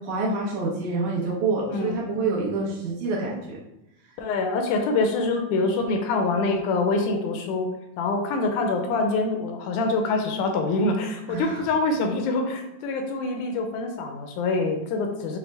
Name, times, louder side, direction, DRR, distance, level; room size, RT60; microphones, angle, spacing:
voice 1, 0.0-3.6 11.3-11.6, right 3 dB, 75° right, -5 dB, 2.3 m, -27 dB
voice 2, 4.2-7.7 8.0-15.4, left 3 dB, 80° left, 4 dB, 1.9 m, -25 dB
6.0 x 2.1 x 3.3 m, 0.91 s
omnidirectional pair, 3.5 m